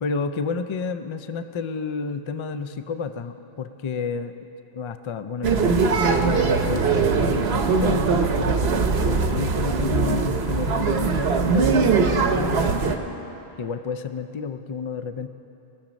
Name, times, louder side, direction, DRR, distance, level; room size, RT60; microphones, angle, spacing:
voice 1, 0.0-4.3 4.7-13.0 13.6-15.3, left 5 dB, 45° left, 10 dB, 0.4 m, -30 dB
sound 1, 5.4-13.0, right 5 dB, 80° right, 1.1 m, -21 dB
20.5 x 7.3 x 5.2 m, 2.9 s
omnidirectional pair, 1.0 m